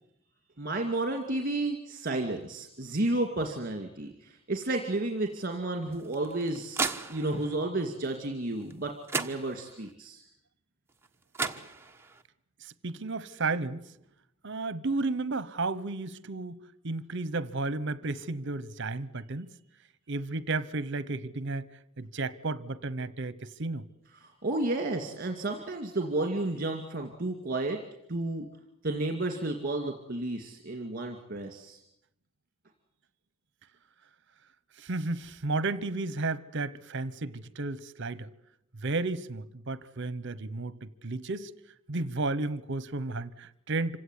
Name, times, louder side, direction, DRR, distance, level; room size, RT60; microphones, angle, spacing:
voice 1, 0.6-10.2 24.2-27.8 28.1-28.5 28.8-31.8, right 2 dB, 40° right, 2.4 m, -32 dB
sound 1, 5.9-7.6 8.7-8.8 9.1-9.9 11.0-11.1 11.3-12.2, right 4 dB, 10° right, 1.2 m, -35 dB
voice 2, 12.6-13.8 14.4-16.6 16.8-19.5 20.1-21.6 22.0-23.8 34.8-38.3 38.8-41.5 41.9-44.0, right 3 dB, 55° right, 1.0 m, -33 dB
26.5 x 17.0 x 9.8 m
head